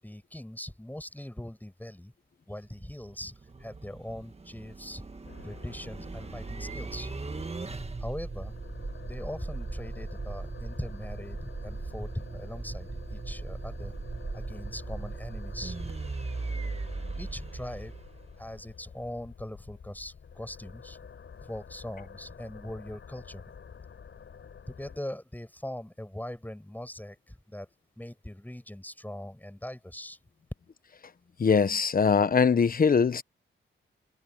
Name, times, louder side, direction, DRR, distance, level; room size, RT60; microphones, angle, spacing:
voice 1, 0.0-2.1 2.5-3.3 3.6-5.1 5.4-7.1 8.0-8.5 9.1-13.9 14.3-15.8 17.2-17.9 18.4-21.0 21.4-23.4 24.7-27.7 28.0-30.2, left 1 dB, 10° left, 7.5 m, -41 dB
sound 1, 2.6-18.6, right 3 dB, 30° right, 1.6 m, -38 dB
sound 2, 5.2-25.0, left 6 dB, 70° left, 5.4 m, -49 dB
voice 2, 31.4-33.2, left 5 dB, 45° left, 1.1 m, -22 dB
cardioid pair, 75°, 21 cm